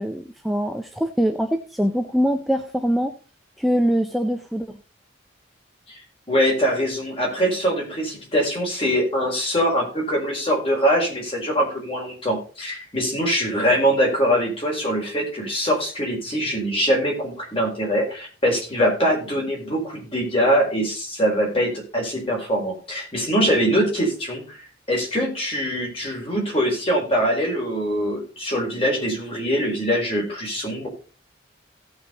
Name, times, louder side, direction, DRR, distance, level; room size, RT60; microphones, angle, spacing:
voice 1, 0.0-3.2 3.6-4.8, equal, ahead, 5 dB, 0.6 m, -23 dB
voice 2, 6.3-24.6 24.9-30.9, equal, 30° left, -1 dB, 4.6 m, -23 dB
17.0 x 6.0 x 4.0 m, 0.37 s
head